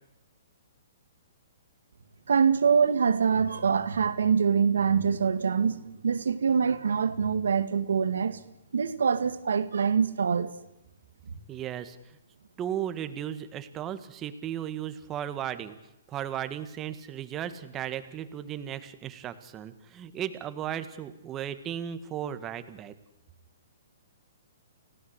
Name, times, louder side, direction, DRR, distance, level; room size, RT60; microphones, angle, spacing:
voice 1, 2.3-5.8 6.0-8.4 8.7-10.5, right 6 dB, 85° right, 2.1 m, -24 dB
voice 2, 11.5-12.2 12.6-15.8 16.1-22.9, right 10 dB, 20° right, 1.8 m, -35 dB
30.0 x 17.0 x 8.2 m
hypercardioid pair, 155°, 0 cm